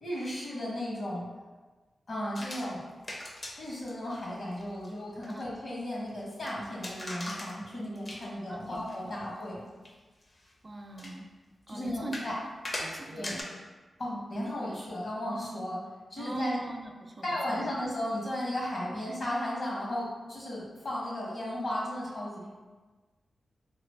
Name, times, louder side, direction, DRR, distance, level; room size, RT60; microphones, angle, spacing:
voice 1, 0.0-1.3 2.1-2.8 3.6-9.6 11.7-12.4 13.1-13.4 14.0-15.8 16.1-16.6 17.2-22.5, left 1 dB, 60° left, -5 dB, 1.1 m, -35 dB
sound 1, 2.4-2.7 3.0-3.6 3.9-4.0 4.3-4.4 4.6-4.9 5.2-5.4 6.5-6.6 6.8-7.6 7.8-8.3 8.8-9.0 9.4-9.5 9.9-10.0 10.5-10.6 11.0-11.1 12.1-12.3 12.7-13.4, left 1 dB, 40° left, 0.5 m, -39 dB
voice 2, 8.5-9.1 10.6-11.3 11.7-12.1 12.8-13.5 16.2-17.7, right 2 dB, 30° right, 3 dB, 0.4 m, -41 dB
2.9 x 2.4 x 3.2 m, 1.3 s
cardioid pair, 80°, 0 cm